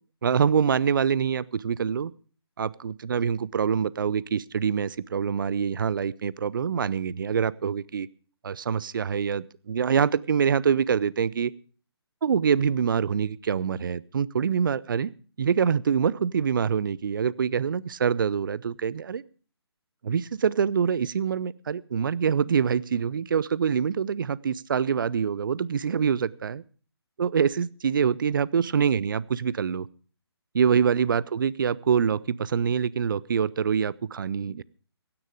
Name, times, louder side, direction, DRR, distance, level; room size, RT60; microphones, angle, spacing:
voice 1, 0.2-2.1 2.6-8.1 8.4-11.5 12.2-15.1 15.4-19.2 20.0-26.6 27.2-29.9 30.5-34.6, right 7 dB, 50° right, 22 dB, 0.6 m, -25 dB
16.0 x 10.0 x 5.1 m, 0.40 s
figure-of-eight pair, 140°, 14 cm